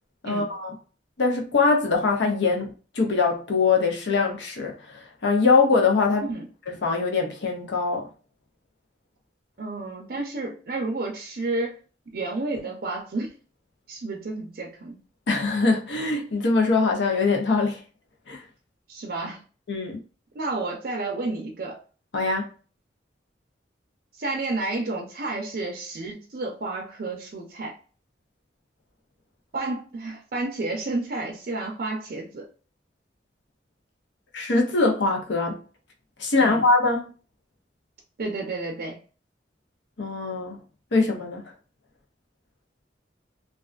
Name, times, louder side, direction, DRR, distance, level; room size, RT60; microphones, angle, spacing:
voice 1, 0.2-0.7 1.2-6.3 6.7-8.1 15.3-17.8 18.3-18.4 19.7-20.0 22.1-22.5 34.3-35.6 36.2-37.0 40.0-40.6 40.9-41.4, left 4 dB, 80° left, 0.7 m, -23 dB
voice 2, 9.6-11.8 12.1-13.4 13.9-15.0 18.9-19.4 20.3-21.8 24.2-27.8 29.5-32.5 36.4-36.6 38.2-39.0, right 2 dB, 55° right, 0.5 m, -31 dB
2.4 x 2.3 x 2.4 m
head